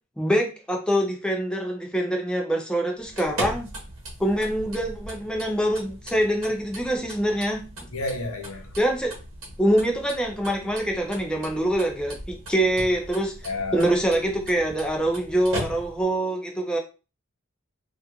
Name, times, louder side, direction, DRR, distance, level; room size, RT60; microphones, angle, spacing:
voice 1, 0.2-3.7 4.2-7.7 8.8-9.1 9.6-13.3 13.7-16.8, right 1 dB, 5° left, 0.3 m, -24 dB
sound 1, 3.0-16.2, right 1 dB, 70° right, 0.9 m, -39 dB
voice 2, 7.9-8.7 13.4-14.0, left 2 dB, 90° left, 0.6 m, -31 dB
2.9 x 2.3 x 2.3 m
head